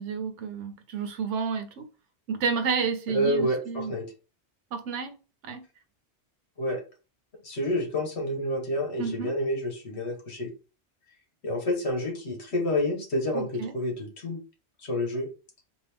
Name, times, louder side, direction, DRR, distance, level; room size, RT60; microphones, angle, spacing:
voice 1, 0.0-1.9 2.3-3.9 4.7-5.1 5.4-5.6 9.0-9.3 13.3-13.7, right 5 dB, 85° right, 1.0 m, -30 dB
voice 2, 3.1-4.1 6.6-6.8 7.4-10.5 11.4-14.4 14.8-15.3, left 1 dB, 70° left, 1.6 m, -29 dB
3.9 x 2.7 x 3.4 m
omnidirectional pair, 1.2 m